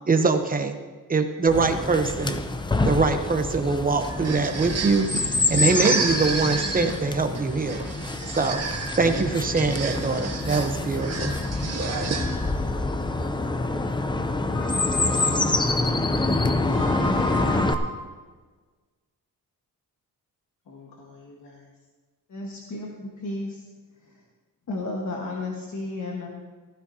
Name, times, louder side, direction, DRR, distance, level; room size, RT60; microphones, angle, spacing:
voice 1, 0.1-0.8 1.1-2.4 2.9-5.1 5.5-8.6 9.0-11.3, right 4 dB, 25° right, 6 dB, 0.8 m, -23 dB
Chirp tweet, 1.5-17.7, left 2 dB, 15° left, 0.5 m, -26 dB
sound 1, 4.0-12.6, right 5 dB, 45° right, 1.5 m, -32 dB
voice 2, 14.5-15.7 16.7-18.1 20.7-21.7, equal, 65° left, -4 dB, 2.1 m, -34 dB
voice 3, 22.3-23.7 24.0-24.2 24.7-26.3, left 2 dB, 50° left, -1 dB, 1.4 m, -33 dB
15.0 x 15.0 x 2.8 m, 1.4 s
wide cardioid pair, 165°, 37 cm